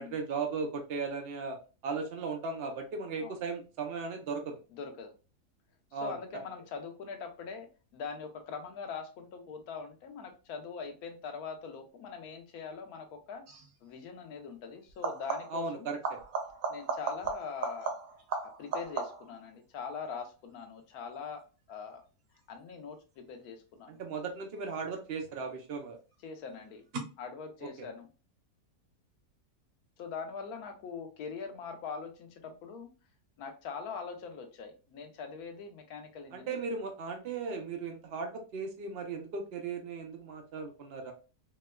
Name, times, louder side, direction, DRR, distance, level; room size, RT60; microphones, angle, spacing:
voice 1, 0.0-1.6 1.8-4.5 5.9-6.1 15.5-16.0 23.9-26.0 27.8-27.9 36.3-41.1, right 4 dB, 85° right, 4 dB, 0.5 m, -36 dB
voice 2, 4.7-5.1 6.0-7.7 7.9-13.4 13.8-15.9 16.7-17.9 18.4-21.4 21.7-22.0 22.5-24.0 26.2-26.8 27.2-28.1 30.0-32.9 33.4-36.6, left 5 dB, 70° left, 5 dB, 1.1 m, -42 dB
sound 1, 13.5-13.7 14.9-15.7 16.0-19.4 24.8-25.4 26.9-27.0, right 4 dB, 65° right, 1.0 m, -36 dB
4.3 x 2.1 x 2.2 m, 0.33 s
omnidirectional pair, 1.7 m